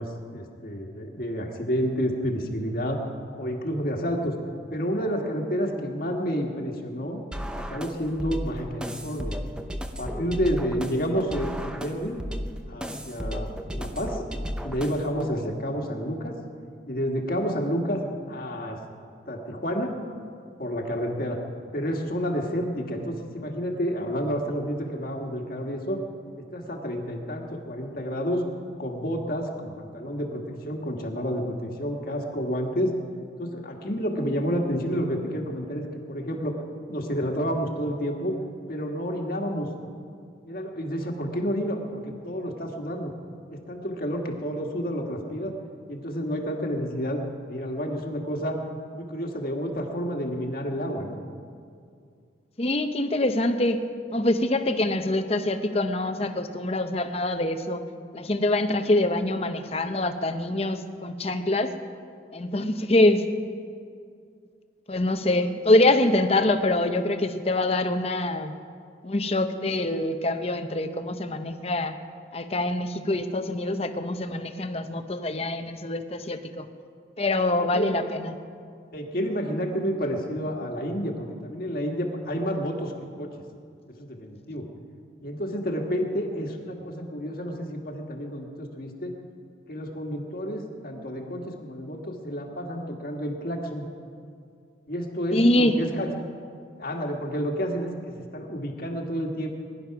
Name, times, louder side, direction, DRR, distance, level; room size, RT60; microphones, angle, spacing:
voice 1, 0.0-3.0 3.4-4.3 4.7-7.2 7.5-9.4 10.0-12.1 12.7-14.2 14.6-16.4 16.9-18.8 19.3-20.0 20.6-21.4 21.7-26.0 26.3-28.4 28.8-32.9 33.4-36.6 36.9-38.4 38.7-39.7 40.4-43.1 43.5-45.5 45.9-48.6 48.9-51.2 77.5-78.1 78.9-83.3 84.0-84.6 85.2-89.1 89.7-93.9 94.9-96.1 96.8-99.5, equal, 50° left, 1 dB, 1.6 m, -30 dB
sound 1, 7.3-15.3, equal, 5° right, 0.7 m, -34 dB
voice 2, 52.6-53.9 54.1-57.8 58.1-61.7 62.3-63.2 64.9-68.5 69.0-71.9 72.3-76.7 77.2-78.3 95.3-95.7, left 1 dB, 30° left, 8 dB, 0.8 m, -24 dB
20.5 x 11.0 x 5.9 m, 2.3 s
head